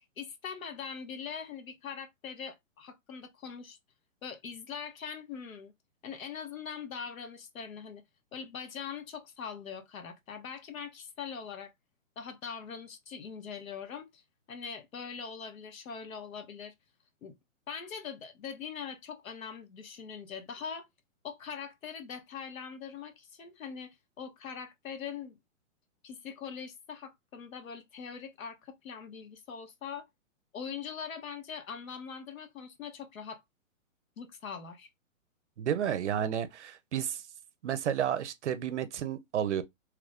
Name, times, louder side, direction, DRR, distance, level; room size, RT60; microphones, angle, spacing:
voice 1, 0.0-3.8 4.2-5.7 6.0-8.0 8.3-11.7 12.2-14.2 14.5-16.7 17.2-17.3 17.7-20.9 21.2-23.9 24.2-25.4 26.0-30.1 30.5-33.4 34.2-34.9, left 6 dB, 90° left, 0.9 m, -42 dB
voice 2, 35.6-37.2 37.6-39.6, right 9 dB, 60° right, 0.5 m, -31 dB
3.0 x 2.5 x 3.3 m
hypercardioid pair, 170°, 40 cm